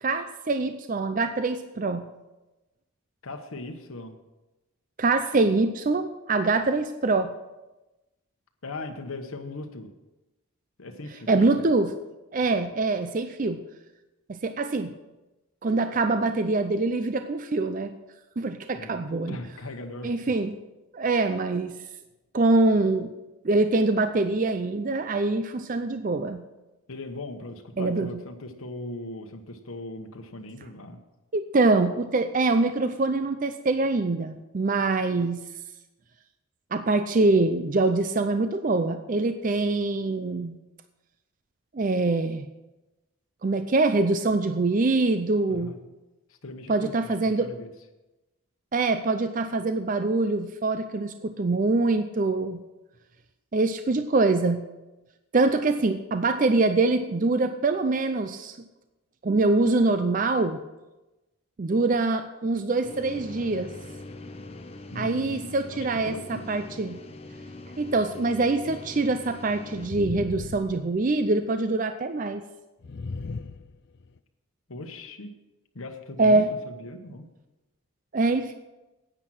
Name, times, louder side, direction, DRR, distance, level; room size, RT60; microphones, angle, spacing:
voice 1, 0.0-2.1 5.0-7.3 11.3-11.9 12.3-13.6 14.3-14.9 15.6-17.9 18.4-19.3 20.0-20.6 20.9-21.7 22.3-23.1 23.4-26.4 27.8-28.1 31.3-35.4 36.7-40.6 41.7-42.5 43.4-45.7 46.7-47.5 48.7-52.6 53.5-54.6 55.3-58.6 59.2-60.6 61.6-63.7 65.0-67.0 67.8-72.4 76.2-76.5 78.1-78.5, right 3 dB, 40° right, 9 dB, 0.4 m, -24 dB
voice 2, 3.2-4.2 8.6-9.9 10.8-11.7 18.7-20.3 26.9-31.0 45.5-45.8 46.4-47.7 64.9-66.5 74.7-75.3 75.7-77.3, left 2 dB, 80° left, 4 dB, 1.1 m, -39 dB
sound 1, 62.8-69.9, left 2 dB, 30° left, 0.8 m, -42 dB
sound 2, 69.7-71.4 72.8-74.2, left 4 dB, 50° left, 0.4 m, -37 dB
10.0 x 9.0 x 6.2 m, 1.0 s
head